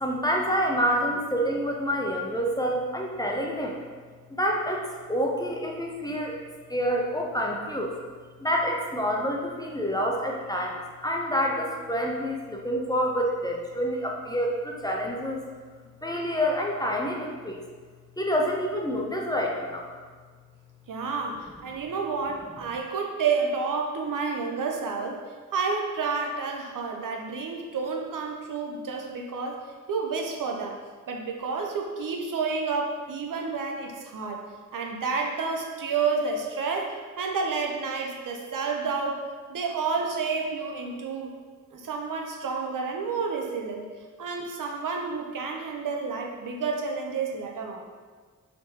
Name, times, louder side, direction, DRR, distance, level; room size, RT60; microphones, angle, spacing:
voice 1, 0.0-3.8 4.3-6.3 6.7-7.9 8.4-15.4 16.0-17.6 18.2-19.9, equal, 10° left, -1 dB, 0.5 m, -27 dB
voice 2, 20.9-25.2 25.5-29.6 29.9-30.8 31.1-34.4 34.7-39.2 39.5-41.3 41.7-43.9 44.2-47.9, right 4 dB, 75° right, 1 dB, 0.5 m, -30 dB
3.4 x 2.8 x 2.9 m, 1.5 s
cardioid pair, 40°, 33 cm